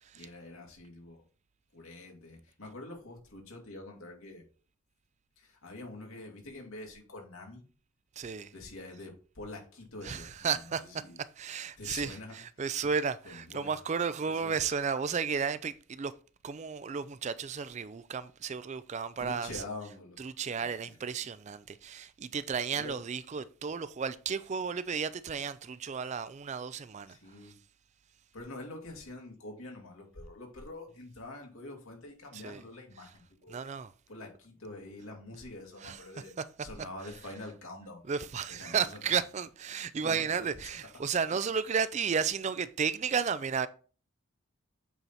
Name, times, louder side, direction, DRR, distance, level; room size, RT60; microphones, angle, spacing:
voice 1, 0.1-1.2 1.7-4.4 5.4-7.6 8.5-11.2 11.8-12.4 13.2-13.7 14.3-14.6 19.2-20.5 22.8-23.0 27.1-27.6 28.3-33.6 34.1-36.3 36.6-38.0 38.5-39.0 39.8-40.2, left 2 dB, 80° left, 2.4 m, -46 dB
voice 2, 8.2-8.5 10.0-16.1 16.4-19.6 20.2-27.5 32.3-32.6 33.5-33.9 35.8-36.0 36.4-36.5 38.1-43.7, right 6 dB, 35° right, 0.3 m, -33 dB
8.0 x 4.5 x 4.1 m
head